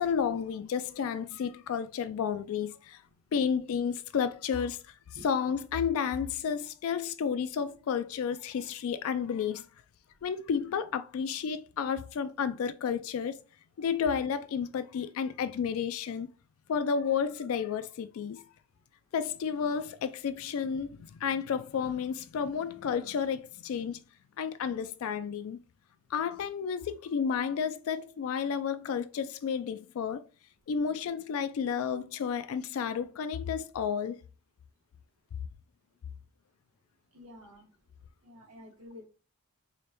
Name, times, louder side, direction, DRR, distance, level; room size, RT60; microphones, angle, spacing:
voice 1, 0.0-3.0 3.3-9.6 10.2-13.4 13.8-16.3 16.7-18.4 19.1-24.0 24.4-25.6 26.1-30.2 30.7-34.2, left 7 dB, 70° left, 0.3 m, -31 dB
voice 2, 37.1-37.7 38.2-39.1, left 1 dB, 85° right, 1.3 m, -49 dB
4.9 x 2.1 x 2.9 m
head